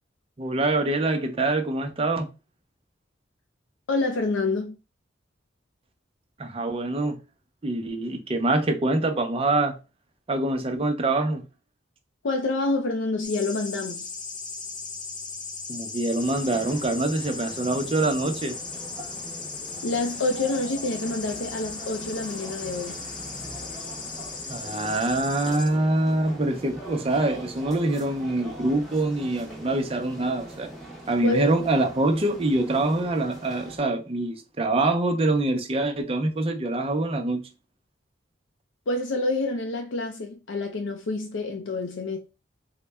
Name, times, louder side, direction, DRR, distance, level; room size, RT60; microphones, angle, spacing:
voice 1, 0.4-2.3 6.4-7.2 7.6-9.7 10.3-11.4 15.7-18.6 24.5-30.7 31.1-37.5, right 2 dB, 30° right, 0.6 m, -25 dB
voice 2, 3.9-4.8 12.2-14.2 19.8-23.1 31.2-31.5 38.9-42.2, left 2 dB, 90° left, 0.5 m, -27 dB
sound 1, 13.2-25.7, left 4 dB, 25° left, 0.4 m, -37 dB
sound 2, 16.2-33.8, right 1 dB, ahead, 0.9 m, -42 dB
3.9 x 2.1 x 3.3 m
head